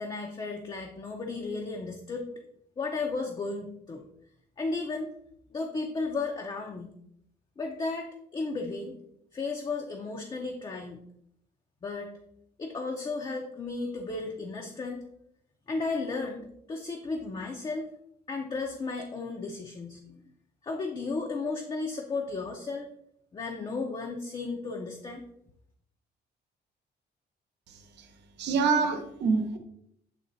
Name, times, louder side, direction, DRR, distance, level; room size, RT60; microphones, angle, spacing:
voice 1, 0.0-2.3 2.8-4.0 4.6-5.1 5.5-6.9 7.6-9.0 9.3-11.0 11.8-12.1 12.6-15.0 15.7-17.9 18.3-20.0 20.6-22.9 23.3-25.2, left 3 dB, 25° left, 1 dB, 0.5 m, -34 dB
voice 2, 27.7-29.6, right 5 dB, 75° right, 6 dB, 0.9 m, -27 dB
7.6 x 3.2 x 4.0 m, 0.74 s
cardioid pair, 160°, 18 cm